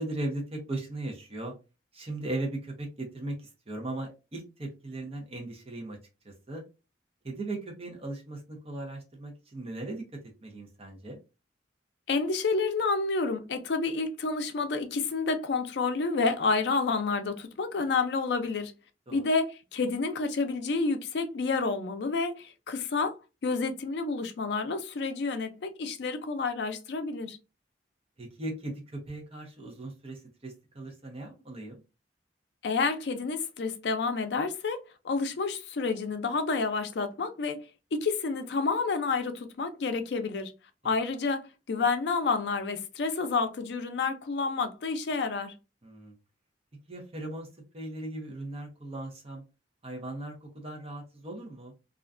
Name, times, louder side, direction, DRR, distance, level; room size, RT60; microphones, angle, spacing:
voice 1, 0.0-1.5 1.9-6.0 6.2-6.6 7.2-11.2 19.1-19.2 28.2-31.8 45.8-46.1 46.9-47.5 47.7-49.4 49.8-51.7, right 2 dB, 35° right, 0.7 m, -38 dB
voice 2, 12.1-18.7 19.1-27.4 32.6-37.6 37.9-40.5 40.8-45.5, left 4 dB, 70° left, 0.4 m, -29 dB
2.4 x 2.2 x 2.4 m
head